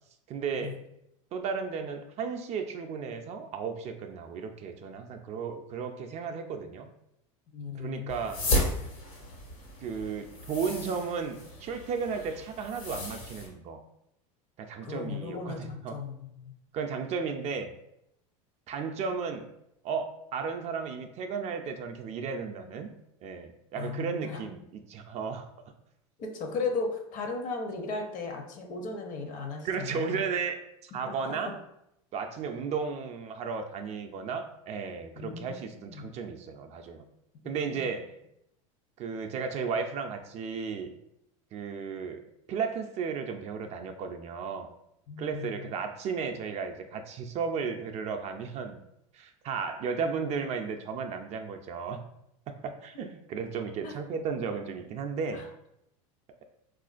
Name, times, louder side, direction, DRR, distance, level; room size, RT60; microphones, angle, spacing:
voice 1, 0.3-0.8 1.3-6.9 7.8-8.4 9.8-13.8 14.6-16.0 16.7-17.7 18.7-19.5 19.8-22.9 23.2-25.5 29.6-31.6 32.1-37.0 37.4-38.1 39.0-40.9 41.5-42.2 42.5-44.7 45.2-48.8 49.1-52.0 52.5-55.4, right 5 dB, 40° right, 6 dB, 0.4 m, -34 dB
voice 2, 7.5-8.1 14.8-16.5 23.8-24.4 26.2-30.2 31.1-31.4 35.2-36.1 37.4-37.9 45.1-45.6 53.8-53.9 55.3-55.5, left 4 dB, 50° left, 3 dB, 0.7 m, -36 dB
sound 1, 8.1-13.5, left 1 dB, 80° left, 1.3 m, -34 dB
3.6 x 2.5 x 2.4 m, 0.79 s
hypercardioid pair, 100°, 17 cm